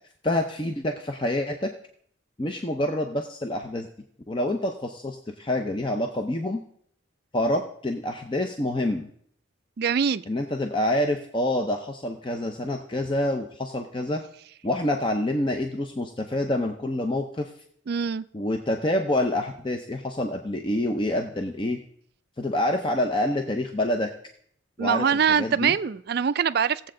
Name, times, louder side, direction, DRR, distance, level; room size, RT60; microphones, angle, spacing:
voice 1, 0.2-1.7 2.4-3.9 4.3-6.6 7.3-9.1 10.3-14.2 14.6-17.5 18.3-21.8 22.4-24.1 24.8-25.7, left 1 dB, 25° left, 0.6 m, -27 dB
voice 2, 9.8-10.2 17.9-18.2 24.8-26.9, right 7 dB, 50° right, 0.4 m, -23 dB
17.5 x 7.7 x 3.8 m
head